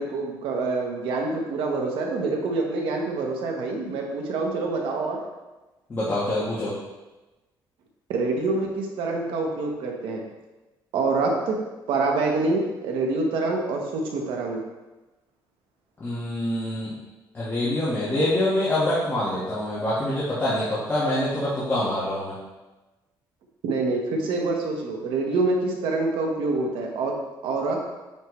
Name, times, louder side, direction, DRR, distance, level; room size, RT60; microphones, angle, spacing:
voice 1, 0.0-5.2 8.1-10.2 10.9-11.6 11.9-14.6 23.6-27.1 27.4-27.8, right 3 dB, 85° right, 1 dB, 1.4 m, -26 dB
voice 2, 5.9-6.7 16.0-17.0 17.3-22.3, left 1 dB, 25° left, -11 dB, 1.9 m, -25 dB
9.0 x 4.6 x 3.3 m, 1.1 s
cardioid pair, 135°, 9 cm